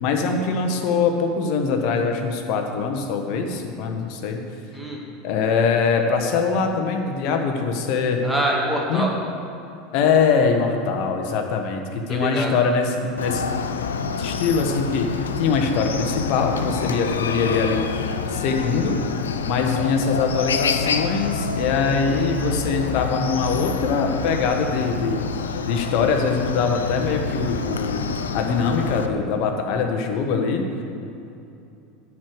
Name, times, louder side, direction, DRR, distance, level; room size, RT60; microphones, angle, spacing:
voice 1, 0.0-4.4 5.2-8.2 8.9-9.1 9.9-13.5 14.2-17.9 18.3-19.0 19.5-25.2 25.6-28.1 28.3-30.8, left 5 dB, 60° left, 4 dB, 1.3 m, -23 dB
voice 2, 4.7-5.0 8.2-9.1 12.1-12.5, right 1 dB, 5° right, -3 dB, 2.2 m, -25 dB
Chicken rooster, 13.2-29.1, left 5 dB, 90° left, 0.5 m, -27 dB
10.0 x 4.8 x 7.8 m, 2.7 s
hypercardioid pair, 90°, 0 cm